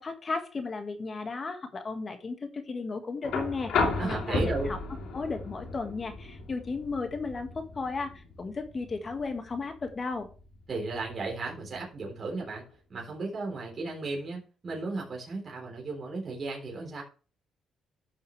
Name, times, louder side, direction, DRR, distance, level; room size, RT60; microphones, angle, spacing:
voice 1, 0.0-4.8 5.1-10.3, left 4 dB, 35° left, 6 dB, 1.8 m, -35 dB
sound 1, 3.2-11.3 12.7-12.8, left 3 dB, 75° left, 3.1 m, -34 dB
voice 2, 3.9-4.7 10.7-12.6 12.9-17.0, right 3 dB, 40° right, -2 dB, 3.7 m, -35 dB
12.5 x 6.6 x 3.3 m, 0.37 s
cardioid pair, 90°, 0 cm